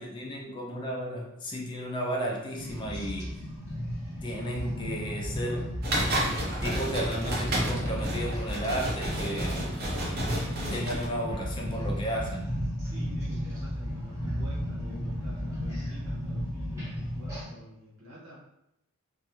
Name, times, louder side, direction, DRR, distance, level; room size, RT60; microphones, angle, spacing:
voice 1, 0.0-3.4 4.2-5.7 6.5-9.7 10.7-12.5, equal, 20° left, -1 dB, 0.3 m, -33 dB
sound 1, 2.5-17.4, equal, 15° right, 0.8 m, -34 dB
sound 2, 5.8-11.1, right 1 dB, 45° right, 0.5 m, -31 dB
Explosion, 11.3-13.1, equal, 85° left, 0.5 m, -47 dB
voice 2, 12.8-18.4, equal, 75° right, -5 dB, 1.0 m, -49 dB
2.4 x 2.2 x 2.9 m, 0.83 s
head